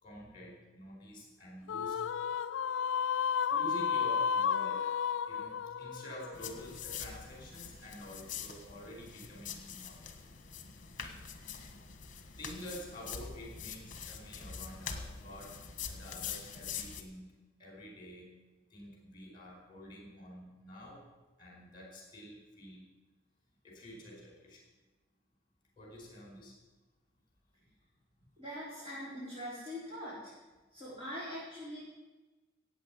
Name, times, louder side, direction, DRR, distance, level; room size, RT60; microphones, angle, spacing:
voice 1, 0.0-2.0 3.5-4.9 5.3-10.0 12.4-15.6 15.9-18.3 18.7-21.0 21.4-22.8 23.6-24.6 25.8-26.6, equal, 25° left, -1 dB, 4.7 m, -48 dB
sound 1, 1.7-7.1, left 7 dB, 80° left, 0.4 m, -33 dB
sound 2, 6.3-17.0, left 7 dB, 45° left, 1.5 m, -44 dB
voice 2, 28.4-30.3 30.7-31.9, equal, 30° right, -9 dB, 4.8 m, -43 dB
15.0 x 8.7 x 8.3 m, 1.2 s
head